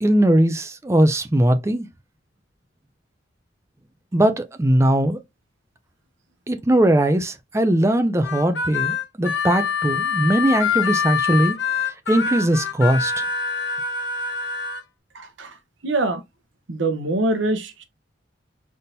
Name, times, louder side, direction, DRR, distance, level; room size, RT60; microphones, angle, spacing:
voice 1, 0.0-1.9 4.1-5.2 6.5-13.2, right 1 dB, 15° right, 0.4 m, -20 dB
Harmonica, 8.2-14.8, left 6 dB, 65° left, 1.0 m, -25 dB
voice 2, 15.1-15.5 15.8-16.2 16.7-17.8, right 2 dB, 75° right, 0.8 m, -24 dB
4.1 x 3.6 x 2.6 m
head